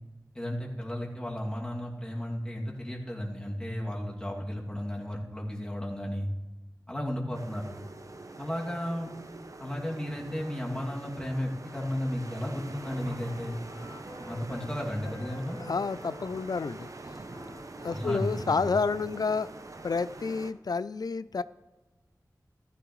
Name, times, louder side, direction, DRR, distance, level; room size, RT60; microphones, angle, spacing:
voice 1, 0.3-6.3 6.9-7.6 8.4-9.1 9.6-13.6 14.2-15.6 17.9-18.7, equal, 15° left, -3 dB, 2.5 m, -34 dB
sound 1, 7.3-20.5, right 2 dB, 50° right, 0.7 m, -45 dB
Wind instrument woodwind instrument, 11.6-14.7 15.0-18.8, left 1 dB, 50° left, 1.4 m, -51 dB
voice 2, 15.3-16.9 17.8-19.5 19.8-21.4, left 4 dB, 70° left, 16 dB, 0.4 m, -30 dB
14.5 x 14.0 x 3.2 m, 1.1 s
wide cardioid pair, 55°, 7 cm